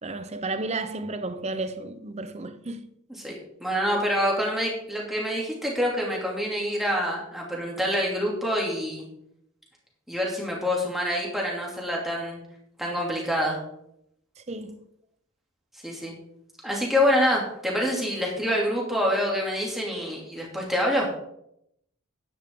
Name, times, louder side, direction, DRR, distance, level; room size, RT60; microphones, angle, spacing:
voice 1, 0.0-2.9 14.4-14.9, right 2 dB, 30° right, 0.7 m, -33 dB
voice 2, 3.2-9.0 10.1-12.4 12.8-13.6 15.8-16.1 16.6-21.1, equal, ahead, 2.8 m, -26 dB
10.5 x 10.5 x 3.8 m
head